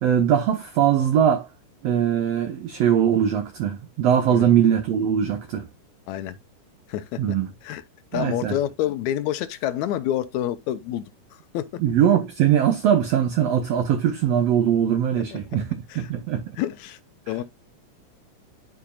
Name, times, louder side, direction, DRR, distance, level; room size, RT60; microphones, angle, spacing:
voice 1, 0.0-1.5 1.8-5.7 7.2-7.5 8.1-8.6 11.8-16.4 17.3-17.4, right 9 dB, 70° right, 1.7 m, -21 dB
voice 2, 6.1-6.4 6.9-7.2 7.6-7.8 8.1-11.0 11.5-11.7 15.9-16.1 16.6-17.0 17.3-17.4, left 12 dB, 80° left, 1.9 m, -27 dB
11.5 x 4.9 x 2.3 m
omnidirectional pair, 3.6 m